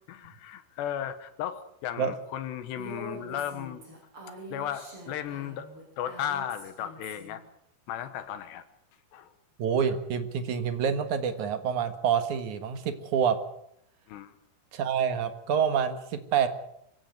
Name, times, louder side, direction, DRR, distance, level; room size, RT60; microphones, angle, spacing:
voice 1, 0.0-3.8 4.5-5.7 6.0-7.4 7.9-8.6 9.1-9.3 14.1-14.3, left 10 dB, 75° left, 11 dB, 3.3 m, -35 dB
Female speech woman speaking, 2.8-7.4, right 1 dB, 30° right, 7.7 m, -44 dB
voice 2, 9.6-13.4 14.7-16.5, right 7 dB, 60° right, 9 dB, 2.3 m, -27 dB
26.0 x 16.0 x 8.1 m, 0.75 s
omnidirectional pair, 5.3 m